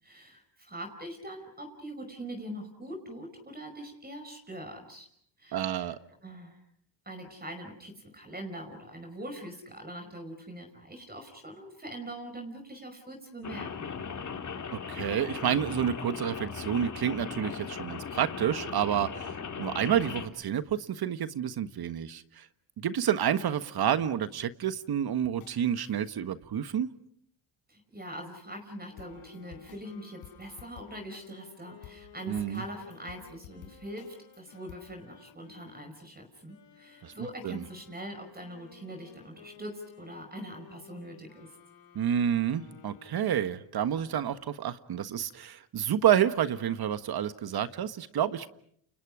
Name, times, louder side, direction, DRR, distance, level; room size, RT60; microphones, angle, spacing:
voice 1, 0.0-5.1 5.4-5.9 6.2-6.6 7.1-13.9 27.7-41.5, right 1 dB, 20° right, 5 dB, 5.2 m, -43 dB
voice 2, 5.5-6.0 14.9-22.5 22.8-26.9 32.3-32.6 37.0-37.1 37.4-37.6 41.9-48.5, right 9 dB, 50° right, 12 dB, 1.5 m, -29 dB
Rain, 13.4-20.3, left 6 dB, 35° left, 2.9 m, -38 dB
sound 1, 25.2-26.1 29.0-31.5 31.8-34.7, left 12 dB, 85° left, 4.2 m, -52 dB
sound 2, 28.9-35.9 36.5-43.6, left 8 dB, 60° left, 5.2 m, -56 dB
29.5 x 28.0 x 4.9 m, 0.66 s
supercardioid pair, 85°, 49 cm